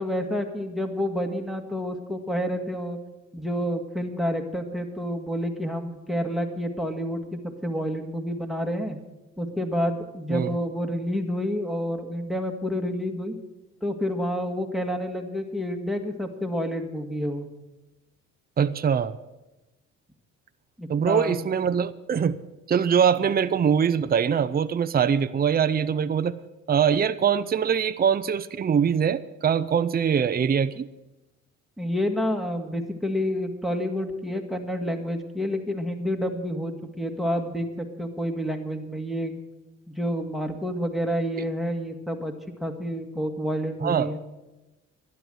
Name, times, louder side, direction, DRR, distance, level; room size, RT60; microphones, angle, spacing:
voice 1, 0.0-3.0 3.3-9.0 9.4-13.4 13.8-17.5 20.8-21.4 31.8-39.4 39.9-42.3 42.6-44.2, equal, ahead, 3 dB, 1.8 m, -29 dB
voice 2, 18.6-19.1 20.9-22.4 22.7-26.4 26.7-30.9 43.8-44.1, right 7 dB, 30° right, 11 dB, 0.6 m, -23 dB
12.5 x 10.5 x 8.0 m, 1.0 s
cardioid pair, 90°, 30 cm